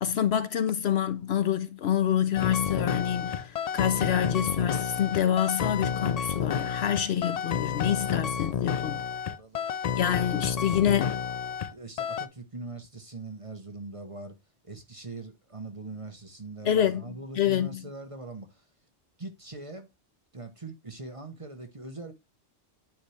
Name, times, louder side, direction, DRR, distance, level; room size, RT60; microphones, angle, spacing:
voice 1, 0.0-9.0 10.0-11.2 16.7-17.0 17.4-17.8, left 9 dB, 65° left, 0.8 m, -27 dB
sound 1, 2.3-11.7 12.0-12.3, left 7 dB, 80° left, 0.3 m, -30 dB
voice 2, 7.8-9.7 10.5-11.0 11.7-14.4 14.6-18.6 19.2-19.9 20.3-22.1, right 3 dB, 30° right, 1.0 m, -42 dB
9.1 x 4.2 x 3.2 m
omnidirectional pair, 1.3 m